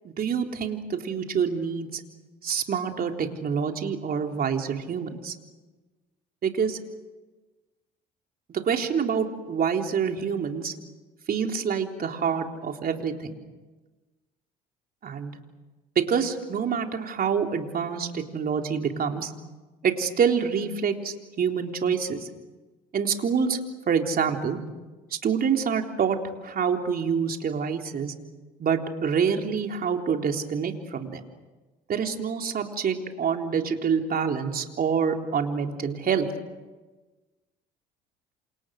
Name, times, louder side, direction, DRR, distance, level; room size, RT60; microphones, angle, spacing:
voice 1, 0.0-2.0 2.4-5.3 6.4-6.8 8.5-10.7 11.3-13.3 15.0-15.4 16.0-19.3 19.8-22.3 22.9-23.6 23.9-24.6 25.1-26.2 26.4-28.1 28.6-31.2 31.9-36.3, right 6 dB, 45° right, 3 dB, 3.7 m, -26 dB
28.0 x 27.5 x 6.6 m, 1.2 s
hypercardioid pair, 70°, 21 cm